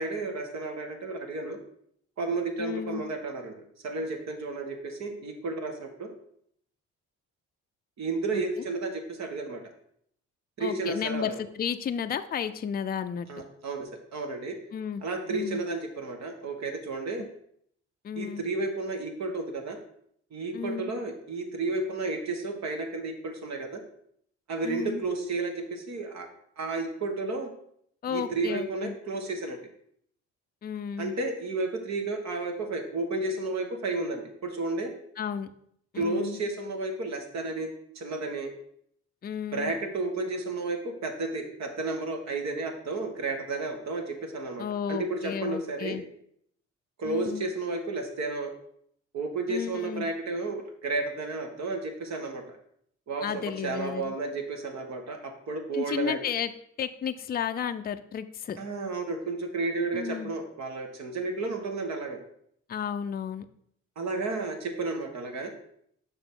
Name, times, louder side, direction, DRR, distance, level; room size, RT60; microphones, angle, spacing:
voice 1, 0.0-1.6 2.2-3.6 3.8-6.1 8.0-9.6 10.6-11.4 13.3-14.6 15.0-17.3 18.1-19.8 20.3-23.8 24.5-26.3 26.6-27.5 28.1-29.6 31.0-34.9 35.9-37.7 37.9-38.5 39.5-46.0 47.0-48.5 49.1-52.6 53.1-56.2 58.6-62.2 63.9-65.5, right 3 dB, 60° right, 4 dB, 1.5 m, -32 dB
voice 2, 2.6-3.0 8.3-8.4 10.6-13.3 14.7-15.6 18.0-18.4 20.5-20.9 24.6-25.0 28.0-28.9 30.6-31.1 35.2-35.5 35.9-36.4 39.2-39.7 44.6-46.0 47.0-47.5 49.5-50.1 53.2-54.1 55.7-56.5 56.8-58.6 59.9-60.3 62.7-63.5, left 8 dB, 30° left, 9 dB, 0.4 m, -33 dB
7.0 x 5.6 x 3.7 m, 0.69 s
cardioid pair, 90°, 30 cm